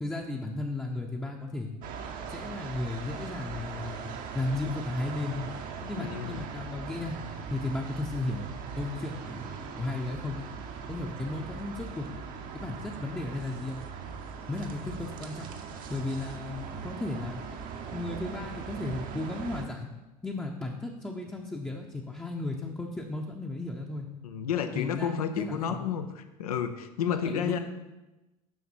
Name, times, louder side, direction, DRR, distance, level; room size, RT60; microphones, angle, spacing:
voice 1, 0.0-1.7 2.3-4.0 4.3-5.5 5.9-7.2 7.5-8.5 8.7-10.4 10.9-12.1 12.5-13.9 14.5-15.5 15.9-17.4 17.9-19.9 20.2-24.1 24.7-26.0 27.3-27.6, left 2 dB, 10° left, -1 dB, 0.8 m, -35 dB
sound 1, 1.8-19.6, right 6 dB, 45° right, 0.9 m, -40 dB
voice 2, 5.8-6.4 24.2-27.6, left 8 dB, 75° left, 8 dB, 0.7 m, -31 dB
7.2 x 5.8 x 4.5 m, 1.1 s
figure-of-eight pair, 70°, 19 cm